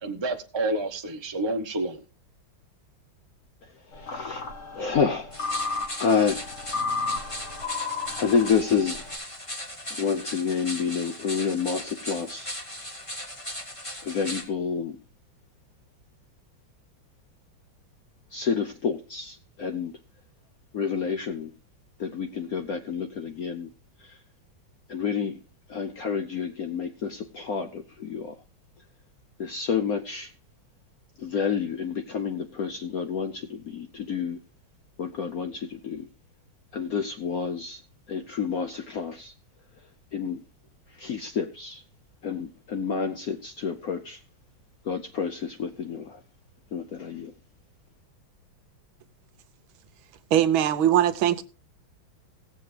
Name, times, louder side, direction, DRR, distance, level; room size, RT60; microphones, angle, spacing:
voice 1, 0.0-2.0, right 2 dB, 45° right, 0.3 m, -29 dB
voice 2, 3.6-4.5 4.7-5.3 6.0-6.5 8.2-9.0 9.9-12.5 14.0-15.0 18.3-20.0 20.7-21.5 22.0-23.7 24.0-24.2 24.9-25.4 25.7-28.4 29.4-30.3 31.2-34.4 35.0-36.1 36.7-37.8 38.1-39.3 40.1-40.4 40.9-41.8 42.2-44.2 44.8-46.2 46.7-47.3, left 6 dB, 65° left, 0.9 m, -29 dB
sound 1, 3.9-9.2, left 4 dB, 40° left, 1.3 m, -33 dB
sound 2, 5.3-14.4, equal, 15° left, 1.3 m, -38 dB
voice 3, 50.3-51.4, right 11 dB, 75° right, 1.5 m, -21 dB
17.5 x 7.7 x 3.2 m
omnidirectional pair, 2.3 m